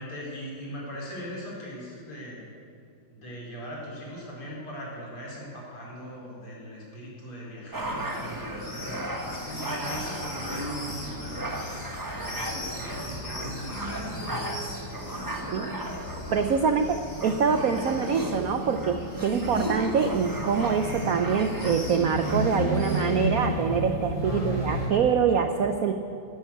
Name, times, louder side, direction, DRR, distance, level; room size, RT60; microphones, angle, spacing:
voice 1, 0.0-2.4 3.1-11.5 12.1-16.9 24.2-24.7, equal, 80° left, -4 dB, 5.0 m, -40 dB
sound 1, 7.7-22.7, right 1 dB, 15° right, 0.7 m, -36 dB
sound 2, 7.8-24.9, equal, 35° left, 3.9 m, -34 dB
voice 2, 16.3-25.9, right 6 dB, 80° right, 6 dB, 0.8 m, -25 dB
12.5 x 12.0 x 8.5 m, 2.4 s
omnidirectional pair, 2.4 m